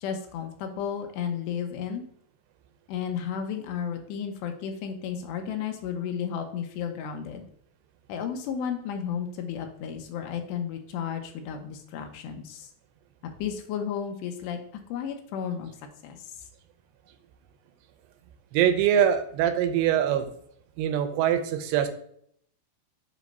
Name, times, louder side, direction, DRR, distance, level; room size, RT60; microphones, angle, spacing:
voice 1, 0.0-2.0 2.9-7.5 8.1-12.7 13.4-14.6 14.9-15.7 16.0-16.3, left 8 dB, 85° left, 5 dB, 2.9 m, -33 dB
voice 2, 18.5-20.3 20.8-21.9, right 10 dB, 80° right, 8 dB, 2.6 m, -23 dB
7.1 x 3.1 x 5.3 m, 0.66 s
omnidirectional pair, 4.8 m